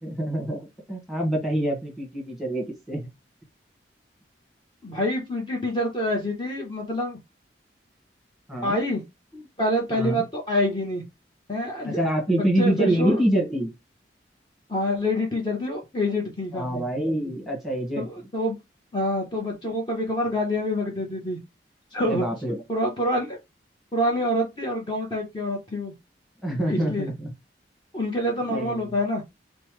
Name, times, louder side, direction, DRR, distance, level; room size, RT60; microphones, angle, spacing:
voice 1, 0.0-3.0 8.5-8.8 9.9-10.2 11.8-13.7 16.5-18.2 22.0-22.6 26.4-27.3 28.5-28.8, right 1 dB, ahead, 1 dB, 1.4 m, -26 dB
voice 2, 4.8-7.2 8.6-9.0 9.3-11.0 11.5-12.0 12.3-13.2 14.7-16.8 18.0-18.6 18.9-21.4 21.9-22.2 22.7-23.4 23.9-25.9 26.6-27.1 27.9-29.2, left 1 dB, 25° left, 0 dB, 0.9 m, -26 dB
5.3 x 2.1 x 3.1 m, 0.21 s
head